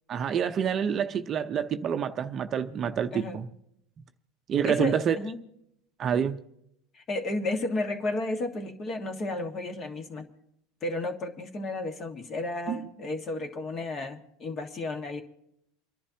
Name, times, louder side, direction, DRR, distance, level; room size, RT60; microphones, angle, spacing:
voice 1, 0.1-3.5 4.5-5.2 6.0-6.4 12.7-12.9, right 8 dB, 30° right, 0.7 m, -27 dB
voice 2, 4.6-5.4 6.9-10.3 10.8-15.2, left 2 dB, 35° left, 1.7 m, -33 dB
29.0 x 11.0 x 2.9 m
supercardioid pair, 135°, 0 cm